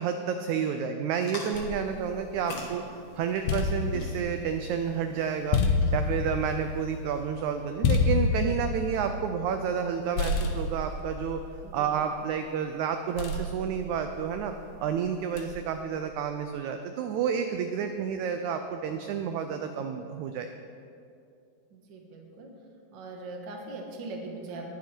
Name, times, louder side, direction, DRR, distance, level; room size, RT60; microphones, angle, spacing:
voice 1, 0.0-5.6 5.9-11.4 11.7-14.5 14.8-20.5, right 7 dB, 85° right, 7 dB, 1.7 m, -30 dB
sound 1, 1.1-7.5, left 2 dB, 45° left, 1.3 m, -47 dB
sound 2, 1.5-2.8 3.2-9.9 10.2-12.4 13.2-14.6 15.4-15.8, left 4 dB, 75° left, 2.4 m, -30 dB
voice 2, 11.6-11.9 21.7-22.5 22.9-24.7, right 2 dB, 45° right, 0 dB, 1.5 m, -40 dB
20.0 x 7.2 x 4.5 m, 2.5 s
omnidirectional pair, 4.0 m